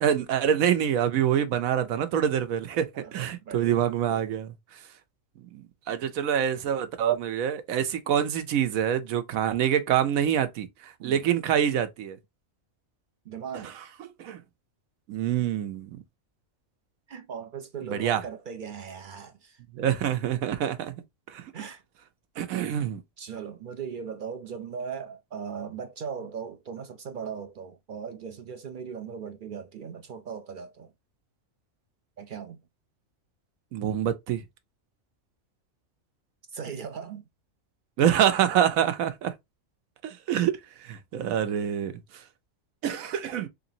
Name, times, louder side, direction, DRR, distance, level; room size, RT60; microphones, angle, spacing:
voice 1, 0.0-2.9 3.1-4.5 5.5-12.2 14.2-14.4 15.1-16.0 17.8-18.2 19.7-20.9 21.3-21.4 22.4-23.0 33.7-34.4 38.0-39.3 40.0-41.9 42.8-43.5, right 9 dB, 85° right, 1.1 m, -26 dB
voice 2, 2.9-4.2 11.0-11.2 13.3-13.7 17.1-19.6 21.5-21.8 23.2-30.9 32.2-32.6 36.5-37.2, right 7 dB, 70° right, 0.4 m, -38 dB
3.9 x 3.3 x 2.7 m
omnidirectional pair, 1.4 m